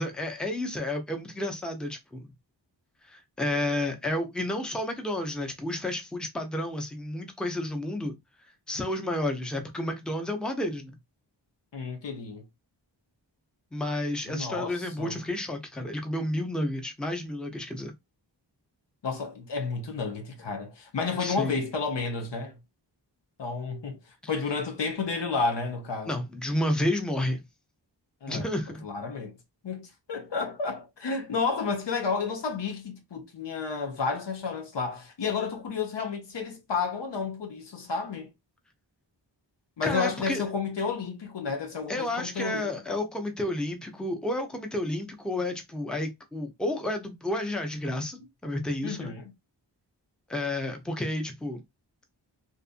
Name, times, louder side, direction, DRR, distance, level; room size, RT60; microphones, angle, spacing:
voice 1, 0.0-2.3 3.1-8.1 8.7-11.0 13.7-17.9 21.2-21.6 26.0-27.4 28.3-28.8 39.8-40.4 41.9-49.1 50.3-51.6, left 1 dB, ahead, 0.6 m, -31 dB
voice 2, 11.7-12.4 14.3-15.2 19.0-22.6 23.4-24.0 24.3-26.1 28.2-28.5 28.8-29.3 29.6-38.3 39.8-43.0 48.8-49.3, left 4 dB, 70° left, 0.8 m, -31 dB
2.7 x 2.5 x 2.4 m
wide cardioid pair, 55°, 44 cm